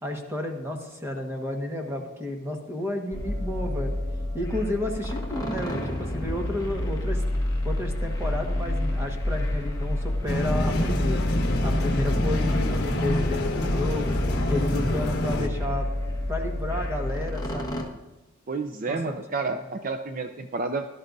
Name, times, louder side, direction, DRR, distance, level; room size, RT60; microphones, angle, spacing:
voice 1, 0.0-3.9 4.3-7.2 7.6-11.2 11.6-14.2 14.5-15.9 16.3-17.8 18.9-19.0 19.5-19.6, left 1 dB, 10° right, 2 dB, 1.3 m, -31 dB
sound 1, 3.1-17.8, left 1 dB, 20° left, 1.4 m, -28 dB
sound 2, 10.3-15.5, left 1 dB, 50° left, 1.4 m, -27 dB
voice 2, 18.5-20.9, right 3 dB, 40° right, 7 dB, 0.4 m, -30 dB
17.0 x 12.5 x 2.6 m, 1.1 s
head